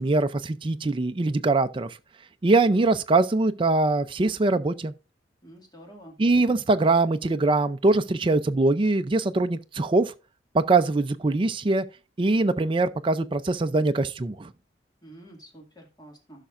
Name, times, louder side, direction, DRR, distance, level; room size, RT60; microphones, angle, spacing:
voice 1, 0.0-1.9 2.4-4.9 6.2-10.1 10.5-11.8 12.2-14.5, right 2 dB, 25° right, 0.4 m, -22 dB
voice 2, 5.4-6.2 15.0-16.5, right 1 dB, 20° left, 2.1 m, -48 dB
15.5 x 5.7 x 2.5 m
head